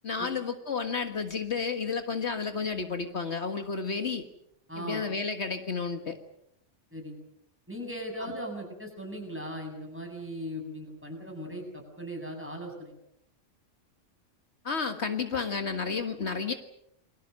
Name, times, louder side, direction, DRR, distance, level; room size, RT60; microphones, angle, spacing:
voice 1, 0.0-4.3 4.8-6.2 14.6-16.5, left 5 dB, 65° left, 7 dB, 1.9 m, -31 dB
voice 2, 4.7-5.0 6.9-7.2 7.7-12.9, equal, 10° right, 2 dB, 7.6 m, -38 dB
29.0 x 23.0 x 6.7 m, 0.75 s
omnidirectional pair, 1.2 m